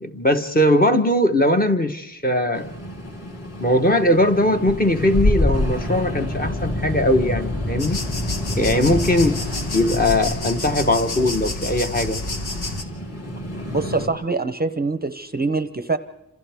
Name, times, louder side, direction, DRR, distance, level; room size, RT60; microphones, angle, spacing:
voice 1, 0.0-2.7 3.6-8.0 8.6-9.4 9.7-12.2, left 1 dB, 25° left, 6 dB, 1.1 m, -20 dB
sound 1, 2.5-14.1, left 1 dB, 40° left, 3.1 m, -27 dB
sound 2, 7.8-12.8, left 2 dB, 80° left, 1.7 m, -29 dB
voice 2, 13.7-16.0, right 3 dB, 25° right, 11 dB, 0.7 m, -24 dB
29.0 x 26.5 x 3.5 m, 0.91 s
wide cardioid pair, 140°, 38 cm